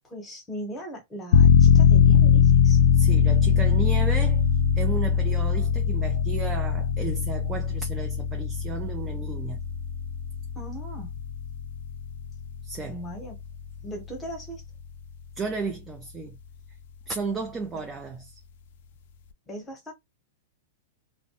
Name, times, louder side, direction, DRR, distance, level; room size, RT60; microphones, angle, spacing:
voice 1, 0.0-2.8 10.5-11.2 12.9-13.4 13.8-14.6 17.7-17.8 19.5-19.9, right 1 dB, 15° left, 1.0 m, -38 dB
sound 1, 1.3-13.8 14.2-14.3, left 7 dB, 60° left, 0.3 m, -21 dB
voice 2, 2.9-4.4 4.8-9.6 12.6-13.0 15.4-16.4 17.1-18.4, right 4 dB, 15° right, 0.4 m, -34 dB
2.1 x 2.1 x 2.8 m
hypercardioid pair, 145°, 0 cm